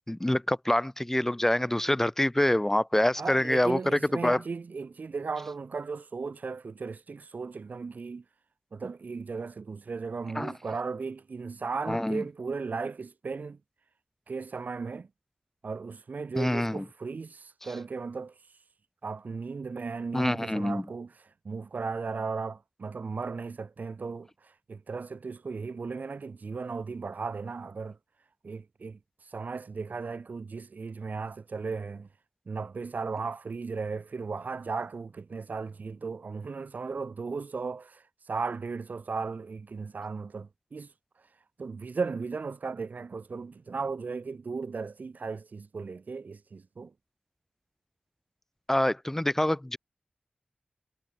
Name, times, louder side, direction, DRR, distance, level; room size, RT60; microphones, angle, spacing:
voice 1, 0.1-4.4 10.4-10.5 11.9-12.2 16.3-16.9 20.1-20.9 48.7-49.8, left 1 dB, 10° left, 5.4 m, -26 dB
voice 2, 3.2-8.2 8.7-13.6 14.3-15.1 15.6-18.3 19.0-21.1 21.4-24.3 24.7-28.0 28.4-29.0 29.3-32.1 32.5-38.0 38.3-40.9 41.6-46.9, right 4 dB, 70° right, 7.4 m, -36 dB
wide cardioid pair, 95°, 3 cm